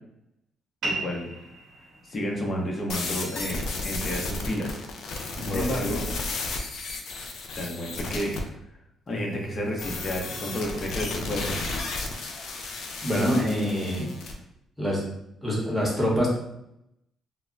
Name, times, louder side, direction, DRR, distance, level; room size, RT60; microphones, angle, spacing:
voice 1, 0.8-1.3 2.0-4.8 5.5-6.0 7.6-8.3 9.1-11.7, equal, 35° left, -1 dB, 0.7 m, -31 dB
sound 1, 0.8-5.9, right 2 dB, 70° right, 0.6 m, -39 dB
sound 2, 2.9-8.4 9.8-14.3, left 3 dB, 70° left, 0.4 m, -33 dB
voice 2, 5.4-5.7 13.0-14.1 14.8-15.0 15.4-16.3, equal, 5° right, -4 dB, 1.0 m, -25 dB
2.1 x 2.1 x 3.7 m, 0.80 s
cardioid pair, 90°, 0 cm